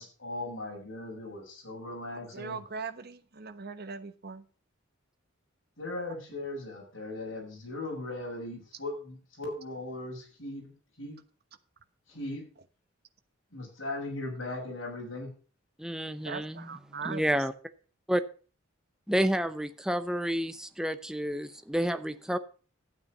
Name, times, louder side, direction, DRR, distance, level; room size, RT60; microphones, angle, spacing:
voice 1, 0.0-2.6 5.8-10.7 11.0-11.2 12.1-12.4 13.5-15.3, left 2 dB, 65° left, 7.1 m, -38 dB
voice 2, 2.3-4.4 16.2-17.2, right 5 dB, 50° right, 1.2 m, -39 dB
voice 3, 15.8-16.7 17.0-17.5 18.1-18.2 19.1-22.4, equal, 5° right, 0.7 m, -30 dB
12.5 x 8.8 x 5.3 m
head